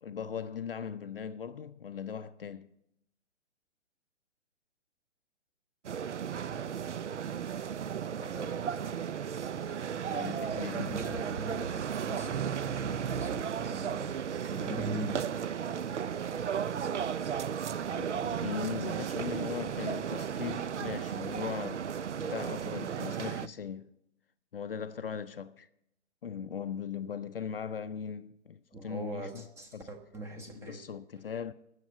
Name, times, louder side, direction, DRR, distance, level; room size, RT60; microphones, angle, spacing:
voice 1, 0.0-2.7 10.0-11.1 17.9-23.9 24.5-25.7 26.2-29.5 29.7-29.9 30.4-31.5, left 7 dB, 50° left, 0.5 m, -39 dB
sound 1, 5.8-23.5, right 8 dB, 70° right, 0.5 m, -34 dB
voice 2, 8.1-9.0 10.7-15.3 28.7-30.8, right 2 dB, 5° right, 0.9 m, -41 dB
14.0 x 6.5 x 8.4 m
figure-of-eight pair, 125°, 36 cm